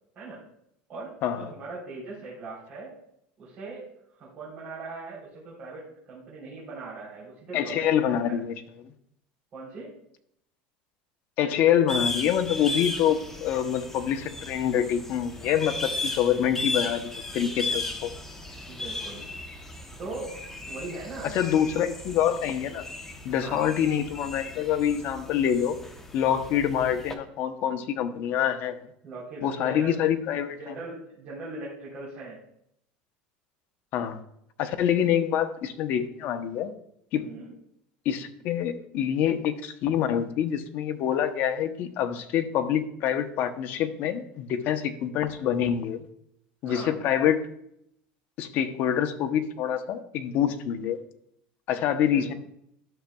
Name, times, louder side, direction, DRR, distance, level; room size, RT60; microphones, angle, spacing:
voice 1, 1.4-2.9 3.4-3.9 4.2-8.4 9.5-9.9 15.9-16.1 18.7-19.3 20.0-20.3 20.7-21.7 23.3-23.7 29.0-30.0 30.6-32.4 37.2-37.5 46.6-47.0 52.1-52.3, right 3 dB, 35° right, -7 dB, 3.5 m, -40 dB
voice 2, 7.5-8.5 8.8-8.9 11.4-18.1 21.2-22.9 23.2-25.8 26.1-28.8 29.4-30.7 33.9-34.2 34.6-36.7 37.1-37.2 38.0-46.0 46.6-47.4 48.4-51.0 51.7-52.3, left 9 dB, 50° left, 8 dB, 0.8 m, -26 dB
sound 1, 11.9-27.1, left 2 dB, 10° left, 0.9 m, -36 dB
12.0 x 7.1 x 2.3 m, 0.73 s
cardioid pair, 150°, 4 cm